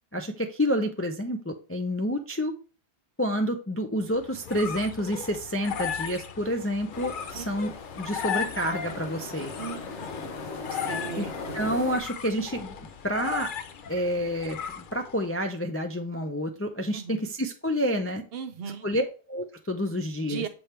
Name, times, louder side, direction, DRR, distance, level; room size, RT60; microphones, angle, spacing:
voice 1, 0.1-2.5 3.2-9.5 11.2-11.3 11.5-13.5 13.9-18.2 18.8-20.4, equal, 20° left, 4 dB, 0.3 m, -29 dB
sound 1, 4.1-15.3, left 8 dB, 55° left, 0.7 m, -37 dB
sound 2, 6.9-12.0, left 3 dB, 80° left, 1.2 m, -39 dB
voice 2, 10.7-11.6 16.9-17.2 18.3-18.9 20.2-20.5, right 7 dB, 65° right, 9 dB, 0.9 m, -37 dB
6.9 x 3.5 x 4.3 m, 0.36 s
omnidirectional pair, 1.2 m